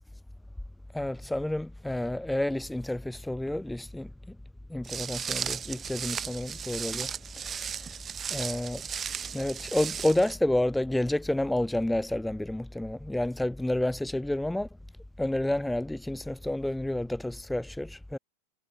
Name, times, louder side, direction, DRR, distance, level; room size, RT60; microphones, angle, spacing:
voice 1, 0.9-4.4 4.7-7.1 7.4-7.5 8.3-8.8 9.3-14.7 15.2-18.2, left 1 dB, 5° left, 0.3 m, -30 dB
Walk footsteps, 4.8-10.3, right 7 dB, 20° right, 0.7 m, -36 dB
figure-of-eight pair, 90°, 0 cm